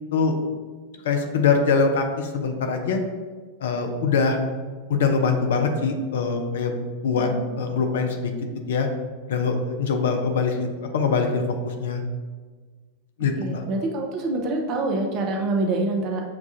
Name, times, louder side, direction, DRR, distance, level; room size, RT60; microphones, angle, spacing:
voice 1, 1.0-3.0 3.6-4.4 4.9-6.8 7.0-7.3 7.6-8.3 8.7-8.9 9.3-11.4 11.8-12.0 13.2-13.6, left 5 dB, 60° left, 5 dB, 0.5 m, -23 dB
voice 2, 7.1-7.4 13.4-16.2, right 2 dB, 40° right, 2 dB, 0.6 m, -26 dB
6.6 x 2.3 x 2.7 m, 1.5 s
figure-of-eight pair, 90°, 0 cm